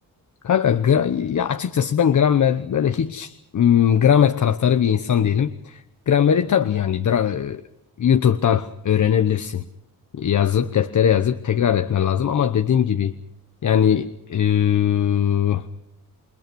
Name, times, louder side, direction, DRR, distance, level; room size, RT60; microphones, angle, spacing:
voice 1, 0.4-7.6 8.0-9.6 10.1-13.1 13.6-15.6, left 9 dB, 55° left, 9 dB, 1.0 m, -20 dB
29.0 x 21.5 x 6.2 m, 0.85 s
wide cardioid pair, 140°, 36 cm